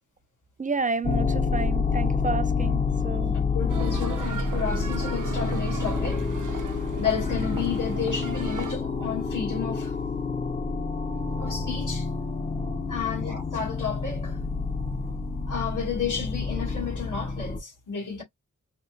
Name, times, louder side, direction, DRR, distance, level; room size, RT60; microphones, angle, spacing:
voice 1, 0.6-3.3, right 4 dB, 25° right, 0.4 m, -30 dB
sound 1, 1.0-17.6, left 4 dB, 25° left, 0.6 m, -28 dB
voice 2, 3.5-6.6 7.0-10.0 11.4-12.1 12.9-14.4 15.5-18.2, left 7 dB, 75° left, 1.9 m, -32 dB
sound 2, 3.7-8.7, right 6 dB, 75° right, 0.7 m, -38 dB
4.9 x 2.0 x 2.8 m
wide cardioid pair, 85°, 31 cm